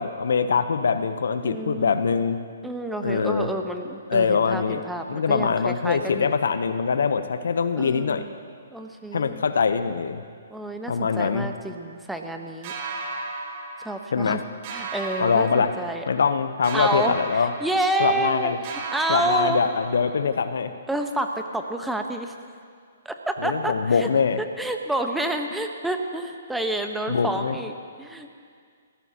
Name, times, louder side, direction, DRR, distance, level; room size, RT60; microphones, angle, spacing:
voice 1, 0.0-2.4 3.0-3.5 4.1-4.8 5.1-8.2 9.1-10.2 10.9-11.5 14.1-14.4 15.2-15.7 16.1-17.5 18.0-18.6 19.1-20.7 23.4-24.4 27.1-27.6, left 5 dB, 70° left, 11 dB, 0.8 m, -23 dB
voice 2, 1.4-2.0 2.6-6.3 7.8-8.3 8.7-9.4 10.5-12.7 13.8-14.4 14.7-16.0 16.7-19.6 20.9-22.3 23.0-24.1 24.4-27.7 28.0-28.3, right 1 dB, 5° right, 4 dB, 1.1 m, -29 dB
sound 1, 12.6-14.3 14.6-16.3 16.6-18.4 18.6-20.3, right 3 dB, 40° right, 2.7 m, -35 dB
24.5 x 15.5 x 2.9 m, 2.1 s
hypercardioid pair, 130°, 0 cm